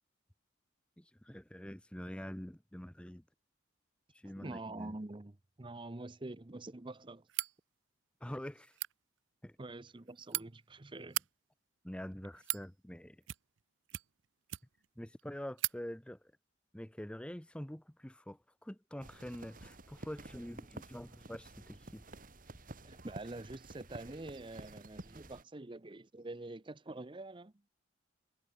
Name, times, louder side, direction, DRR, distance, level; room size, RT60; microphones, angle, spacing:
voice 1, 1.0-3.2 4.1-5.0 8.2-8.8 9.4-9.6 11.8-13.2 15.0-16.3 16.7-22.1, equal, 5° left, 0.7 m, -46 dB
voice 2, 4.2-7.3 9.6-11.2 22.8-27.5, right 2 dB, 25° right, 0.7 m, -46 dB
sound 1, 7.3-7.6 8.6-8.9 9.9-10.4 11.0-11.3 12.1-12.7 13.2-13.6 13.9-14.9 15.2-15.3 15.6-15.8, right 17 dB, 80° right, 0.6 m, -38 dB
sound 2, 19.0-25.4, right 2 dB, 45° right, 2.0 m, -51 dB
head